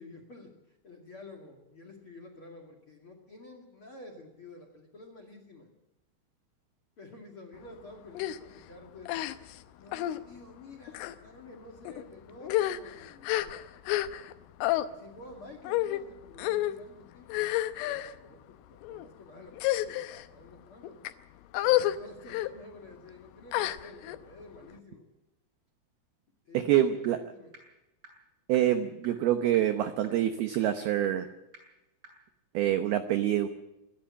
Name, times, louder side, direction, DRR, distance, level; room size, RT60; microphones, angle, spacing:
voice 1, 0.0-5.7 7.0-9.3 9.8-14.3 14.8-17.5 17.8-19.5 19.8-21.0 21.6-25.1 26.5-27.0 27.3-27.5 28.7-28.9, left 2 dB, 45° left, 5 dB, 1.9 m, -50 dB
sound 1, 8.2-8.4 9.1-9.6 9.9-10.2 10.9-11.2 11.9-12.0 12.4-14.3 14.6-14.9 15.7-16.0 16.4-16.8 17.3-18.1 18.8-19.1 19.5-20.2 20.8-21.1 21.5-22.0 22.3-22.5 23.5-24.2, left 15 dB, 80° left, 3.3 m, -29 dB
voice 2, 26.5-27.2 28.5-31.3 32.5-33.5, right 12 dB, 90° right, 9 dB, 2.1 m, -26 dB
sound 2, 27.0-27.1 27.5-27.6 28.0-28.1 28.5-28.6 29.0-29.1 29.5-29.6 30.0-30.1 30.5-30.6 31.0-31.1 31.5-31.6 32.0-32.1, right 3 dB, 30° right, 8.5 m, -49 dB
27.0 x 11.5 x 8.6 m, 0.97 s
omnidirectional pair, 5.8 m